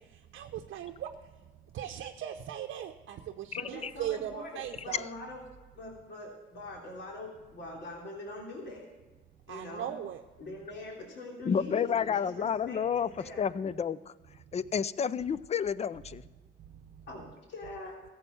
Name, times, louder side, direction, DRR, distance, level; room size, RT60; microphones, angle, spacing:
voice 1, 0.3-1.1 1.7-5.1 9.5-10.2, right 11 dB, 75° right, 4 dB, 0.7 m, -38 dB
voice 2, 3.5-5.4 5.7-8.9 9.5-9.9 10.4-13.4 17.1-18.0, left 2 dB, 65° left, -1 dB, 3.2 m, -43 dB
voice 3, 11.5-13.1 13.4-14.1 14.5-16.2, left 7 dB, 35° left, 18 dB, 0.5 m, -30 dB
14.5 x 7.9 x 7.0 m, 1.3 s
cardioid pair, 90°, 20 cm